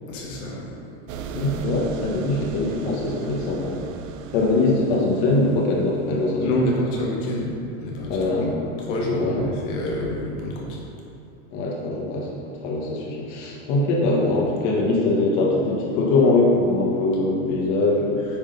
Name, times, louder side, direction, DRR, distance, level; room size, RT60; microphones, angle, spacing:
voice 1, 0.1-0.7 6.4-8.5 8.9-10.8, left 1 dB, 75° left, -3 dB, 1.5 m, -27 dB
sound 1, 1.1-6.4, right 5 dB, 80° right, 0.7 m, -37 dB
voice 2, 1.3-3.8 4.3-6.5 8.1-8.6 9.1-9.5 11.5-18.3, left 2 dB, 50° left, -3 dB, 1.7 m, -22 dB
9.8 x 3.7 x 5.4 m, 2.7 s
supercardioid pair, 145°, 38 cm